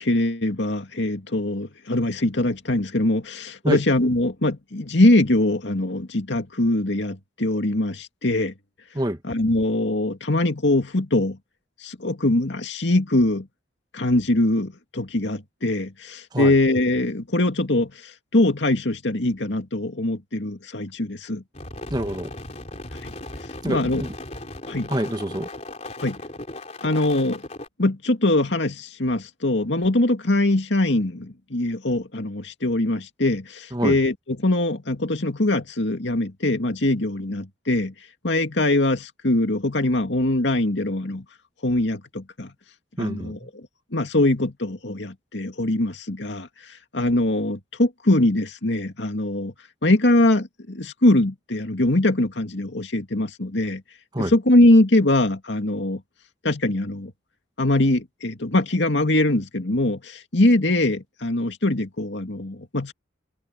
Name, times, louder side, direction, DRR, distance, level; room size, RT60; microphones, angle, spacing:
voice 1, 0.0-8.5 9.2-11.4 11.8-13.5 13.9-17.9 18.3-21.4 23.0-23.1 23.7-24.0 24.7-24.9 26.0-26.2 26.8-27.4 27.8-37.9 38.2-41.2 41.6-42.5 43.0-43.7 43.9-46.5 46.9-49.5 49.8-53.8 54.2-56.0 56.4-57.1 57.6-62.9, left 1 dB, 70° left, 2.3 m, -22 dB
sound 1, 21.5-27.7, left 2 dB, 35° left, 3.8 m, -37 dB
voice 2, 21.9-22.3 23.6-24.1 24.9-25.5 33.7-34.0 43.0-43.5 54.1-54.3, right 1 dB, 20° right, 1.6 m, -26 dB
head